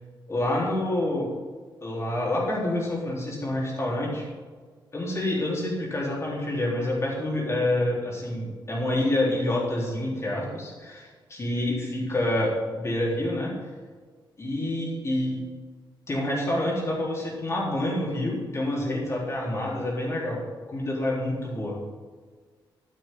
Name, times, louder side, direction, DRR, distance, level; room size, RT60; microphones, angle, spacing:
voice 1, 0.3-1.3 1.8-4.3 4.9-13.5 14.4-15.4 16.1-20.4 20.7-21.8, left 1 dB, 35° left, -4 dB, 3.9 m, -27 dB
11.5 x 10.5 x 3.9 m, 1.5 s
cardioid pair, 115°, 9 cm